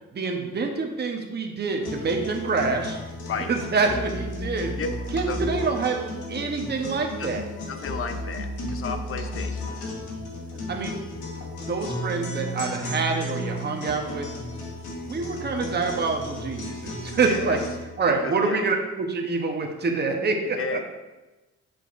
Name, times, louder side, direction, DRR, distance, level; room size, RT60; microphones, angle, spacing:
voice 1, 0.1-3.0 3.5-4.7 5.1-6.0 6.3-7.5 10.7-11.0 11.7-14.3 15.1-17.6 18.0-20.8, right 4 dB, 35° right, 2 dB, 0.9 m, -26 dB
sound 1, 1.8-17.8, left 1 dB, 80° left, 1.4 m, -34 dB
voice 2, 7.7-9.6 17.3-17.6 18.1-18.6 20.6-20.8, left 5 dB, 45° left, 8 dB, 0.7 m, -32 dB
7.5 x 5.1 x 2.5 m, 1.1 s
cardioid pair, 90°, 30 cm